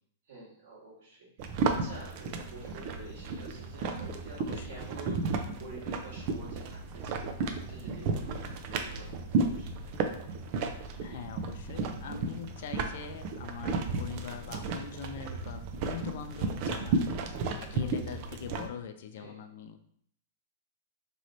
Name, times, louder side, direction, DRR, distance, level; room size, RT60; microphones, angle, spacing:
voice 1, 0.3-1.3 1.7-7.3 7.7-8.4 8.7-9.7 19.2-19.4, right 2 dB, 70° right, -4 dB, 1.5 m, -48 dB
sound 1, 1.4-18.7, right 4 dB, 50° right, 0.4 m, -33 dB
voice 2, 4.4-4.8 11.0-17.3 17.6-19.8, left 7 dB, 65° left, 8 dB, 0.3 m, -43 dB
3.0 x 2.9 x 2.6 m, 0.65 s
hypercardioid pair, 115°, 0 cm